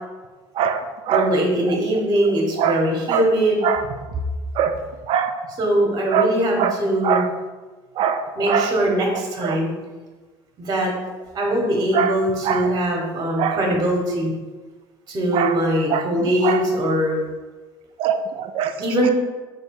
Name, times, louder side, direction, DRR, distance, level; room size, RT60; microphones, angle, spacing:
voice 1, 0.6-1.3 2.6-2.8 3.1-3.2 3.6-3.8 4.6-4.8 5.1-5.3 6.1-6.3 6.6-6.8 7.0-7.3 8.0-8.7 9.4-9.6 11.9-12.2 12.4-12.8 13.4-13.6 15.3-15.5 15.9-16.6 18.0-18.7, right 8 dB, 55° right, 9 dB, 0.4 m, -22 dB
voice 2, 1.1-3.6 5.6-7.2 8.4-9.7 10.6-10.9 11.3-14.3 15.1-17.2 18.8-19.1, right 1 dB, 35° right, 0 dB, 0.9 m, -21 dB
3.2 x 2.7 x 4.6 m, 1.3 s
supercardioid pair, 90°, 11 cm